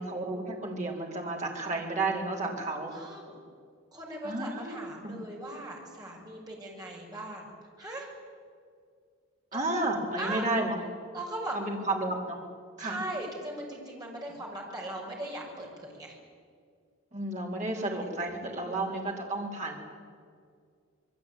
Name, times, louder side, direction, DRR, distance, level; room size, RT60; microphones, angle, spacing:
voice 1, 0.0-2.9 4.2-4.8 5.0-5.2 9.5-10.8 11.5-12.4 12.8-13.0 17.1-19.8, right 2 dB, 35° right, -1 dB, 4.4 m, -32 dB
voice 2, 2.9-3.4 3.9-7.5 7.8-8.1 9.5-9.8 10.2-10.5 11.1-11.6 12.8-16.2 18.6-18.8, right 1 dB, 20° right, -2 dB, 6.4 m, -39 dB
27.0 x 21.5 x 9.4 m, 2.2 s
head